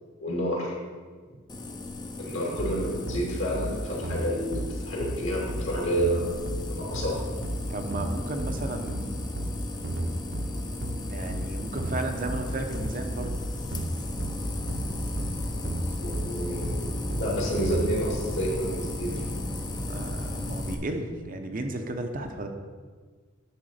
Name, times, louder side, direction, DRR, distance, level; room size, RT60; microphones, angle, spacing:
voice 1, 0.2-0.7 2.2-6.3 6.7-7.2 16.0-19.2, equal, 70° left, -3 dB, 2.5 m, -30 dB
sound 1, 1.5-20.8, left 1 dB, 20° left, 0.6 m, -35 dB
sound 2, 2.6-17.8, right 1 dB, 65° right, 0.9 m, -33 dB
voice 2, 7.7-9.2 11.1-13.4 19.9-22.5, right 2 dB, 40° right, 5 dB, 0.7 m, -34 dB
10.0 x 3.7 x 6.5 m, 1.5 s
head